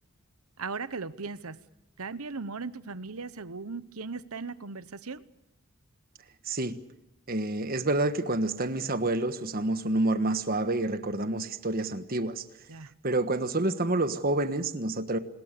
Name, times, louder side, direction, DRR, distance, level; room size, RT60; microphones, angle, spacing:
voice 1, 0.6-1.6 2.0-5.2 12.7-12.9, right 4 dB, 80° right, 15 dB, 1.0 m, -38 dB
voice 2, 7.3-12.4 13.0-15.2, right 2 dB, 40° right, 10 dB, 1.4 m, -28 dB
27.5 x 20.5 x 6.8 m, 0.88 s
head